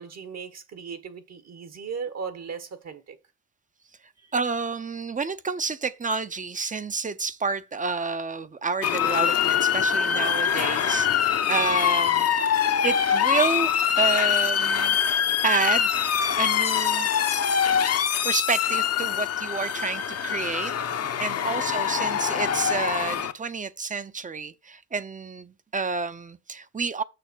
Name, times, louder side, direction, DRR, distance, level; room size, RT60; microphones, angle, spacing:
voice 1, 0.0-3.2 4.2-4.3 11.5-11.7 21.4-21.7, right 6 dB, 60° right, 1.6 m, -38 dB
voice 2, 4.3-12.3 12.8-15.0 15.4-15.9 16.4-17.1 18.2-20.7 21.2-27.0, right 4 dB, 25° right, 0.7 m, -29 dB
Motor vehicle (road) / Siren, 8.8-23.3, left 8 dB, 55° left, 1.0 m, -24 dB
6.8 x 6.3 x 6.2 m
cardioid pair, 90°, 30 cm